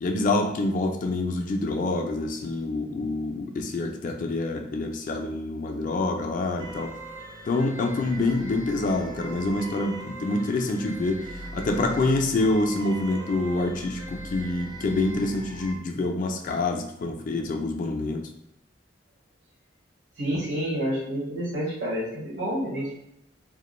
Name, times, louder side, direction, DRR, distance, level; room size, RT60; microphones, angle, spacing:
voice 1, 0.0-6.9 7.5-18.3, left 2 dB, 45° left, 4 dB, 0.3 m, -26 dB
sound 1, 6.6-15.7, right 1 dB, 25° right, 0.4 m, -40 dB
voice 2, 20.2-22.9, equal, 75° right, -5 dB, 1.0 m, -29 dB
2.4 x 2.1 x 3.0 m, 0.78 s
head